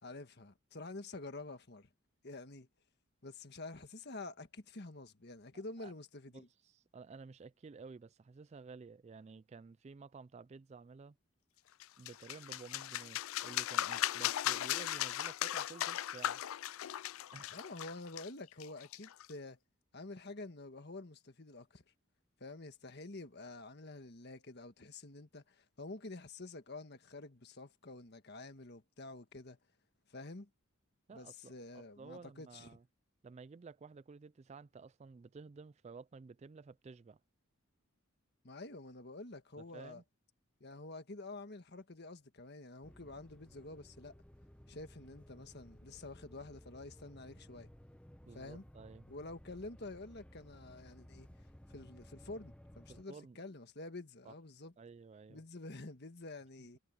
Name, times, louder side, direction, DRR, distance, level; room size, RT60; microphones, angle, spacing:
voice 1, 0.0-1.9 2.2-2.7 3.2-6.5 17.5-19.6 19.9-21.8 22.4-29.6 30.1-30.5 31.1-32.7 38.4-40.0 40.6-44.1 44.7-47.7 48.3-48.6 49.1-51.3 51.7-54.7 55.3-56.8, left 2 dB, 50° left, 1.6 m, -48 dB
voice 2, 6.3-11.2 12.0-16.4 17.3-17.7 31.1-32.8 33.2-37.2 39.6-40.0 48.3-49.1 52.9-53.4 54.2-54.3 54.8-55.4, right 4 dB, 30° right, 0.3 m, -53 dB
sound 1, 11.8-19.3, left 12 dB, 75° left, 0.4 m, -38 dB
sound 2, 42.8-53.0, equal, 5° left, 0.8 m, -58 dB
head